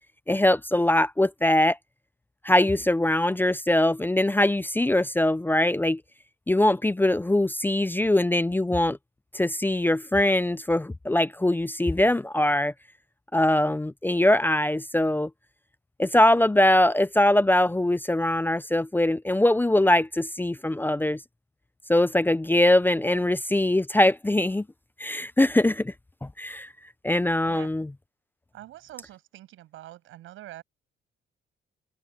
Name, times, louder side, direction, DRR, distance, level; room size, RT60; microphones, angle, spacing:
voice 1, 0.3-1.8 2.4-6.0 6.5-9.0 9.3-12.7 13.3-15.3 16.0-21.2 21.9-24.6 25.0-25.9 26.4-26.7 27.0-27.9, left 1 dB, 10° left, 0.6 m, -22 dB
voice 2, 28.5-30.6, right 14 dB, 85° right, 7.9 m, -45 dB
open air
cardioid pair, 90°, 20 cm